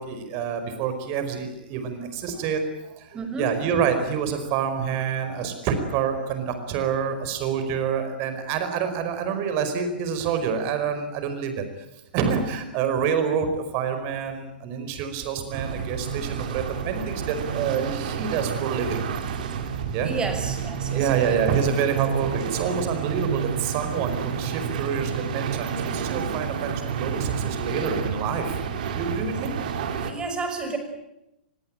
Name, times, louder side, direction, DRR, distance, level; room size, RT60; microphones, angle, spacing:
voice 1, 0.0-11.6 12.1-19.1 19.8-20.1 20.9-28.5 28.9-29.6, right 7 dB, 40° right, 8 dB, 5.1 m, -27 dB
voice 2, 3.1-3.5 20.0-21.1 30.0-30.8, right 4 dB, 15° right, 6 dB, 6.0 m, -31 dB
sound 1, 15.5-30.1, right 7 dB, 55° right, 3.2 m, -29 dB
24.5 x 22.0 x 9.0 m, 0.88 s
figure-of-eight pair, 110°, 5 cm